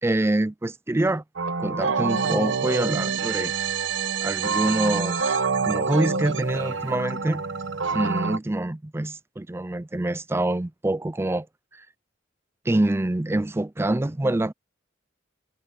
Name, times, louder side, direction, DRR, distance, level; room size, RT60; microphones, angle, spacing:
voice 1, 0.0-1.2 1.6-3.5 4.2-7.4 7.9-11.5 11.7-11.9 12.7-14.5, right 1 dB, 15° right, 0.4 m, -26 dB
sound 1, 1.4-8.4, right 5 dB, 85° right, 1.1 m, -26 dB
head